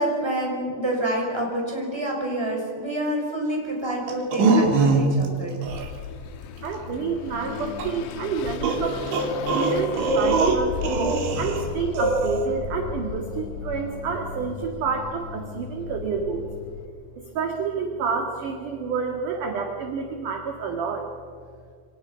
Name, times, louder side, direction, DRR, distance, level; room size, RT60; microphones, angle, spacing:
voice 1, 0.0-5.5, right 1 dB, 5° right, -1 dB, 6.1 m, -27 dB
sound 1, 4.1-5.3 5.6-5.9 7.8-7.9 8.6-11.6 12.0-12.5, right 3 dB, 85° right, 4.9 m, -22 dB
Car passing by / Accelerating revving vroom, 5.6-16.9, left 7 dB, 75° left, 3.2 m, -35 dB
voice 2, 6.6-9.1 9.5-10.8 11.4-16.5 17.3-21.1, right 5 dB, 55° right, 3 dB, 3.0 m, -29 dB
28.5 x 26.5 x 5.9 m, 2.1 s
omnidirectional pair, 5.1 m